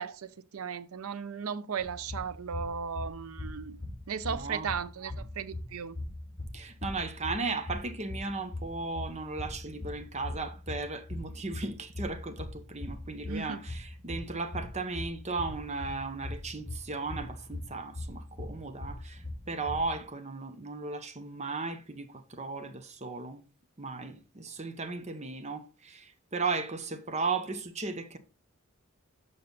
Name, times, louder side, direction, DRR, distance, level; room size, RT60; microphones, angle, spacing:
voice 1, 0.0-3.8 4.1-6.0 13.3-13.6, right 6 dB, 85° right, 0.6 m, -36 dB
sound 1, 1.8-20.0, left 1 dB, 30° left, 3.2 m, -41 dB
voice 2, 4.3-4.7 6.5-19.2 19.5-23.4 23.8-28.2, right 3 dB, 30° right, 0.9 m, -36 dB
7.1 x 5.4 x 4.0 m
head